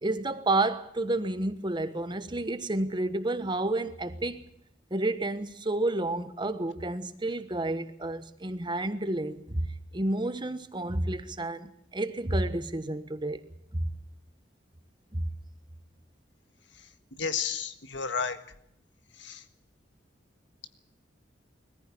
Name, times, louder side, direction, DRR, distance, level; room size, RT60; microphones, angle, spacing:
voice 1, 0.0-4.5 4.9-13.4 13.8-13.9 15.1-15.3, right 2 dB, 25° right, 1.3 m, -30 dB
voice 2, 17.2-18.4 19.2-19.4, left 6 dB, 80° left, 1.7 m, -31 dB
21.5 x 15.0 x 8.6 m
head